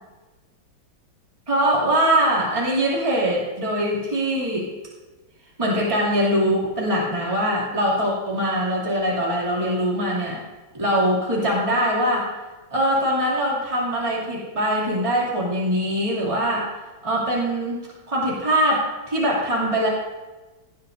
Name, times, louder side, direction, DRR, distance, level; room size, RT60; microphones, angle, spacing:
voice 1, 1.5-4.7 5.6-10.4 10.7-12.3 12.7-16.7 17.0-19.9, equal, 15° right, -6 dB, 2.6 m, -22 dB
17.0 x 9.6 x 2.6 m, 1.2 s
omnidirectional pair, 2.1 m